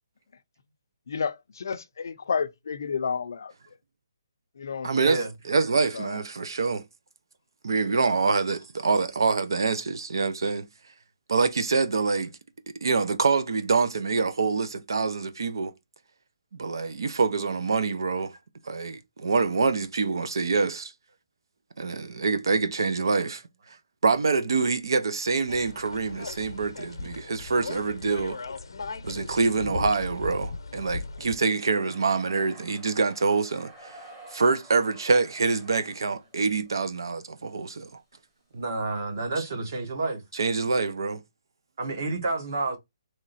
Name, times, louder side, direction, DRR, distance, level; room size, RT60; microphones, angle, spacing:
voice 1, 1.1-3.5 4.6-5.3 5.9-6.2, left 6 dB, 50° left, 0.5 m, -31 dB
voice 2, 4.8-6.8 7.6-10.7 11.3-12.3 12.8-15.7 16.5-18.3 18.6-20.9 21.8-23.4 24.0-28.4 29.0-34.0 34.3-37.9 40.3-41.2, right 4 dB, 65° right, 0.7 m, -25 dB
sound 1, 25.5-31.4, left 4 dB, 90° left, 0.7 m, -37 dB
sound 2, 30.2-36.9 37.2-37.8 38.1-38.2 38.7-38.9 39.5-40.7, right 2 dB, 10° right, 1.0 m, -52 dB
voice 3, 38.5-40.2 41.8-42.8, right 3 dB, 40° right, 1.1 m, -29 dB
3.6 x 3.2 x 4.0 m
hypercardioid pair, 175°, 2 cm